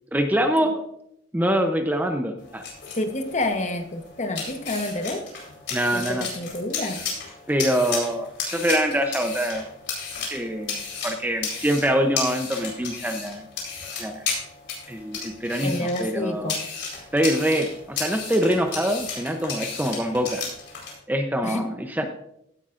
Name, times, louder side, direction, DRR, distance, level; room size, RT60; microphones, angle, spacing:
voice 1, 0.1-0.8 1.3-2.6 5.7-6.3 7.5-9.7 10.3-13.5 14.0-14.3 14.9-16.6 17.1-20.4 21.1-22.0, equal, 10° right, 5 dB, 0.6 m, -24 dB
sound 1, 2.4-20.9, left 5 dB, 65° left, 4.2 m, -34 dB
voice 2, 2.9-5.3 5.9-7.0 15.6-16.6 21.4-21.7, left 1 dB, 35° left, 6 dB, 1.0 m, -29 dB
16.0 x 9.9 x 2.5 m, 0.78 s
head